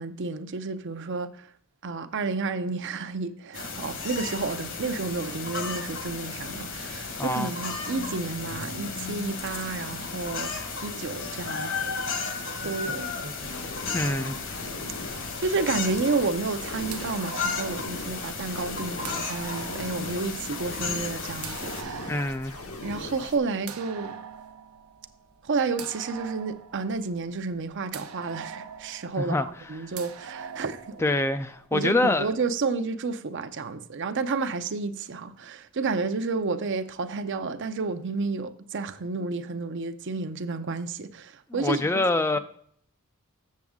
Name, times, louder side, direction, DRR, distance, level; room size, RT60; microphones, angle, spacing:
voice 1, 0.0-1.5 1.8-10.5 10.8-12.0 12.6-13.1 13.8-13.9 15.4-22.2 22.8-24.2 25.4-31.1 31.7-41.8, right 4 dB, 55° right, 0.6 m, -31 dB
sound 1, 3.5-21.8, left 4 dB, 60° left, 1.3 m, -34 dB
voice 2, 7.2-7.5 13.9-14.4 22.1-22.6 29.2-29.9 31.0-32.3 41.5-42.4, left 2 dB, 10° left, 0.3 m, -26 dB
sound 2, 12.5-31.7, right 6 dB, 85° right, 0.8 m, -44 dB
sound 3, 13.4-23.4, left 2 dB, 75° left, 1.2 m, -41 dB
7.5 x 7.0 x 3.6 m
head